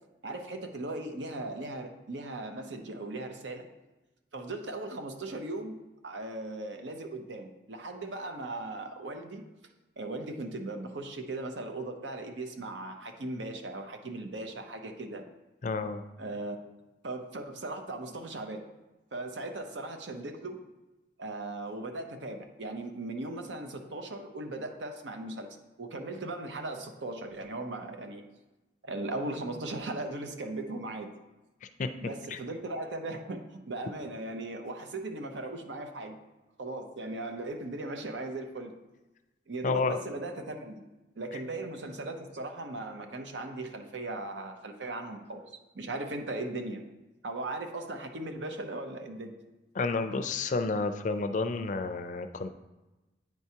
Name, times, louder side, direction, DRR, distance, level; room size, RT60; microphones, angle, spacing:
voice 1, 0.2-3.6 4.3-9.4 10.0-15.3 16.2-16.6 17.0-18.6 19.1-20.6 21.2-28.2 28.8-31.1 32.0-36.2 36.6-38.7 39.5-40.8 41.2-46.9 47.2-49.3, right 2 dB, 90° right, 5 dB, 0.7 m, -38 dB
voice 2, 15.6-16.0 31.8-31.9 32.3-32.4 39.6-40.0 41.3-41.4 49.7-52.5, left 3 dB, 45° left, 8 dB, 0.4 m, -30 dB
9.3 x 4.5 x 2.8 m, 1.1 s
head